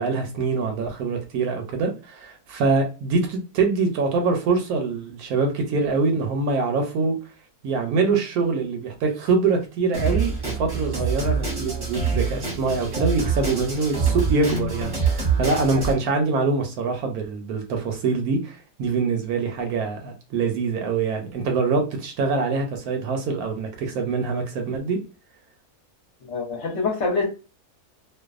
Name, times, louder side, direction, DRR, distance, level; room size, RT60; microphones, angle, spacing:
voice 1, 0.0-7.2 7.6-25.0, right 4 dB, 75° right, 1.0 m, -24 dB
Drum kit, 9.9-15.9, right 5 dB, 25° right, 0.8 m, -25 dB
voice 2, 26.2-27.2, left 4 dB, 55° left, 0.9 m, -25 dB
2.6 x 2.2 x 2.3 m
omnidirectional pair, 1.7 m